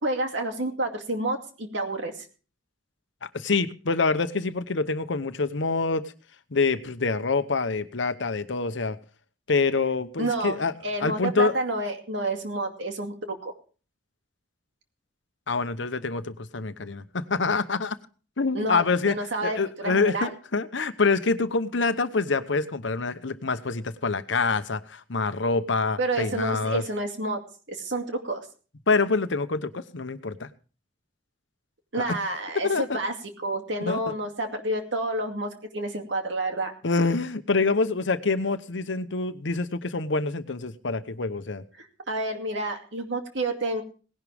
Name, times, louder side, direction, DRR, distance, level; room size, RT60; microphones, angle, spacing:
voice 1, 0.0-2.1 10.2-13.5 18.5-20.3 26.0-27.4 27.7-28.4 31.9-33.1 33.4-36.7 41.8-43.8, right 1 dB, 70° right, 4 dB, 2.4 m, -29 dB
voice 2, 3.2-6.1 6.5-9.0 9.5-10.7 11.0-11.6 15.5-18.0 18.4-26.8 28.9-30.5 32.0-32.1 32.6-33.0 33.8-34.1 36.8-41.6, left 4 dB, 70° left, 11 dB, 0.9 m, -26 dB
18.0 x 11.0 x 3.5 m, 0.38 s
head